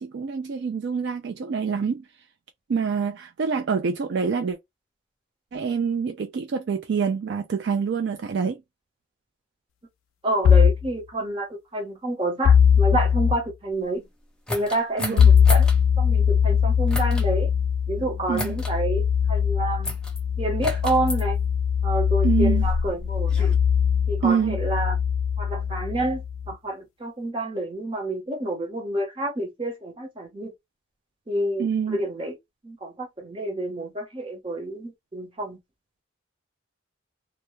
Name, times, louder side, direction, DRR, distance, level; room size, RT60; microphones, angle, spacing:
voice 1, 0.0-2.1 2.7-4.6 5.5-8.6 15.0-15.3 18.3-18.6 22.2-22.7 24.2-24.6 31.6-32.0, right 6 dB, 55° right, 0.3 m, -26 dB
voice 2, 10.2-14.1 14.5-15.7 16.0-17.5 17.9-20.0 20.4-21.4 21.8-23.5 24.1-25.0 25.4-26.2 26.5-30.5 31.3-32.3 32.6-35.6, right 1 dB, 25° right, 0.8 m, -28 dB
sound 1, 10.5-10.9 12.4-13.4 15.2-26.5, left 7 dB, 85° left, 0.3 m, -21 dB
sound 2, 14.5-15.8 16.9-17.3 18.3-18.7 19.8-20.2 20.6-21.2 22.1-23.6, left 1 dB, 5° left, 0.5 m, -32 dB
2.2 x 2.1 x 3.0 m
head